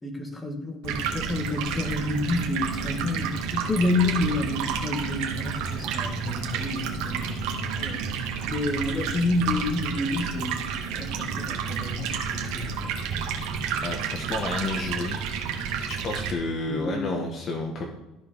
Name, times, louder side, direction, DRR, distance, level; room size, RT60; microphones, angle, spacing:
voice 1, 0.0-13.0 16.7-17.2, left 2 dB, 15° left, 4 dB, 1.8 m, -29 dB
Stream, 0.8-16.3, right 7 dB, 75° right, 1.8 m, -30 dB
voice 2, 13.8-15.2 15.9-17.9, left 3 dB, 35° left, 3 dB, 1.3 m, -30 dB
13.0 x 5.2 x 5.6 m, 0.99 s
cardioid pair, 145°, 0 cm